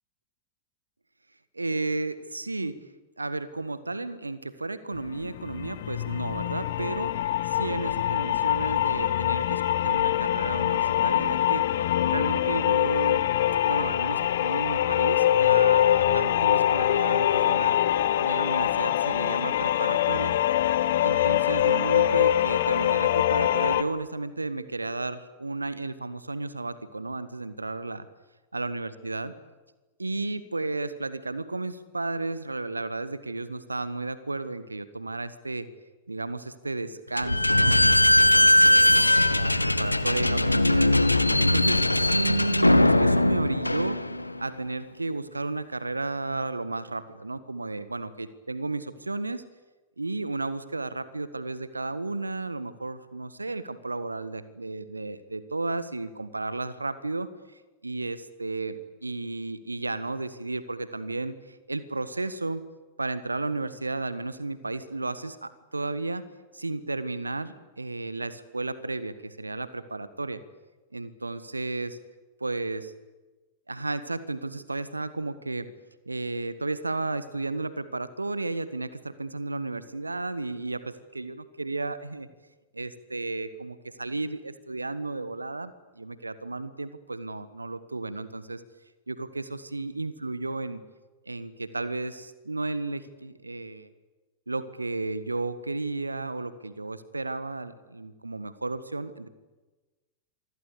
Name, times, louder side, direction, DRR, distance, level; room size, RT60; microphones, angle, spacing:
voice 1, 1.5-2.8 3.2-7.1 7.4-13.3 13.6-17.8 18.2-20.4 21.0-28.0 28.5-29.3 30.0-35.7 36.1-40.9 41.4-44.0 44.4-49.4 50.0-62.6 63.0-66.2 66.5-70.4 70.9-72.0 72.4-72.9 73.7-75.7 76.1-82.3 82.7-88.6 89.1-90.8 91.3-93.9 94.5-99.3, right 2 dB, 80° right, 14 dB, 1.5 m, -33 dB
sound 1, 5.0-23.8, left 12 dB, 60° left, 1.6 m, -24 dB
Slam / Squeak, 37.2-44.4, left 1 dB, 85° left, 1.4 m, -20 dB
27.0 x 24.5 x 8.4 m, 1.2 s
figure-of-eight pair, 90°, 0 cm